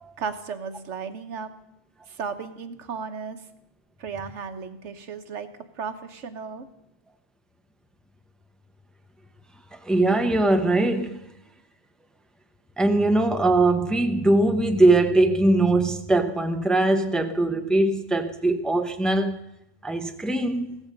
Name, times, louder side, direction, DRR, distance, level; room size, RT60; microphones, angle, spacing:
voice 1, 0.2-1.5 2.1-3.4 4.0-5.5 5.8-6.7, right 5 dB, 85° right, 1.4 m, -34 dB
voice 2, 9.8-11.2 12.8-19.4 19.8-20.8, right 2 dB, ahead, 0.8 m, -21 dB
16.0 x 14.0 x 5.3 m
omnidirectional pair, 1.2 m